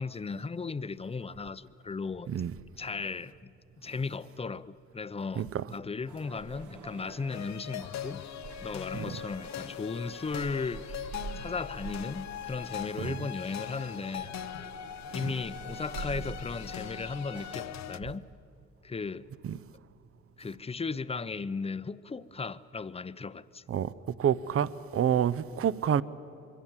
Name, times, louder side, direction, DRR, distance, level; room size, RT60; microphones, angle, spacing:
voice 1, 0.0-2.3 2.8-3.5 3.8-8.2 8.6-14.7 15.1-18.2 18.8-19.3 20.4-23.6, left 4 dB, 20° left, 0.7 m, -36 dB
sound 1, 6.1-17.6, right 4 dB, 80° right, 2.0 m, -46 dB
sound 2, 7.3-18.0, left 10 dB, 65° left, 0.8 m, -41 dB
voice 2, 24.2-26.0, right 9 dB, 50° right, 0.7 m, -27 dB
25.5 x 23.0 x 7.4 m
cardioid pair, 90°, 30 cm